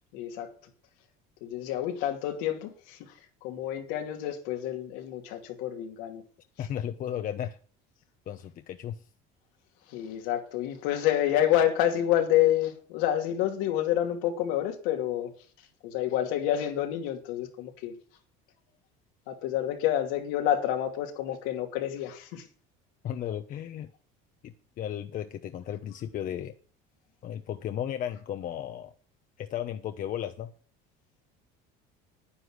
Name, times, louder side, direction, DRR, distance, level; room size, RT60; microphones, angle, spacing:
voice 1, 0.1-0.5 1.4-6.2 6.6-6.7 9.9-15.3 15.6-18.0 19.3-22.5, left 11 dB, 80° left, 2.6 m, -28 dB
voice 2, 6.6-7.6 8.3-9.0 23.0-23.9 24.4-26.5 27.2-28.9 29.4-30.5, left 10 dB, 45° left, 0.9 m, -35 dB
10.0 x 9.9 x 6.2 m
cardioid pair, 135°, 20 cm